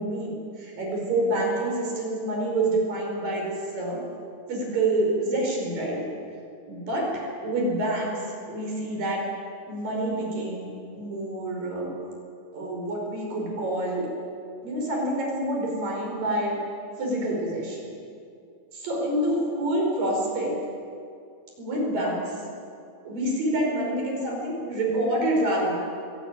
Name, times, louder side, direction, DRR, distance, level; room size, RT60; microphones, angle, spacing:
voice 1, 0.0-4.0 4.5-6.0 6.7-8.2 8.5-9.2 9.7-11.9 12.5-14.1 14.6-16.6 17.0-17.8 18.7-20.6 21.6-22.3 23.0-25.7, right 1 dB, 45° right, -1 dB, 6.7 m, -27 dB
22.5 x 18.0 x 9.3 m, 2.5 s
omnidirectional pair, 5.6 m